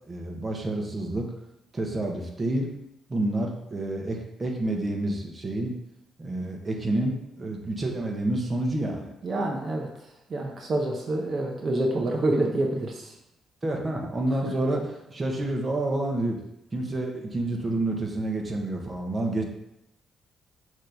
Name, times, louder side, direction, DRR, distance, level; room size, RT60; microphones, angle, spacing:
voice 1, 0.1-1.3 1.7-2.7 3.1-5.7 6.2-9.1 13.6-16.4 16.7-19.4, right 1 dB, 30° right, 1 dB, 1.3 m, -29 dB
voice 2, 9.2-9.9 10.3-13.1, right 2 dB, 45° right, 1 dB, 0.9 m, -27 dB
6.6 x 3.2 x 5.2 m, 0.84 s
cardioid pair, 90°, 0 cm